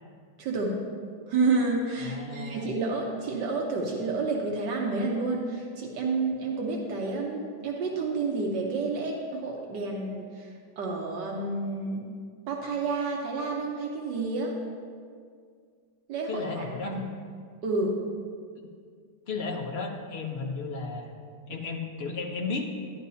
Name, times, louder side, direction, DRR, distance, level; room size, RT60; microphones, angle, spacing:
voice 1, 0.4-0.8 1.3-12.0 12.5-14.6 16.1-17.0 17.6-18.0, right 3 dB, 80° right, -1 dB, 1.6 m, -30 dB
voice 2, 2.0-2.7 16.3-17.1 19.3-21.1 21.5-22.7, left 4 dB, 45° left, 1 dB, 1.0 m, -34 dB
12.5 x 11.0 x 2.8 m, 2.1 s
omnidirectional pair, 1.9 m